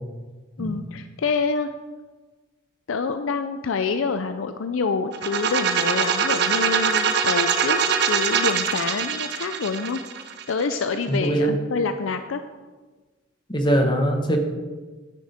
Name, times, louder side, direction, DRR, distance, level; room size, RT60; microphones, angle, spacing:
voice 1, 0.6-1.7 2.9-10.0 10.5-12.4, left 4 dB, 80° left, 9 dB, 0.5 m, -27 dB
sound 1, 5.1-10.9, right 6 dB, 55° right, 0.8 m, -23 dB
voice 2, 11.1-11.5 13.5-14.4, right 1 dB, 25° left, 4 dB, 1.2 m, -21 dB
9.9 x 9.8 x 4.3 m, 1.3 s
head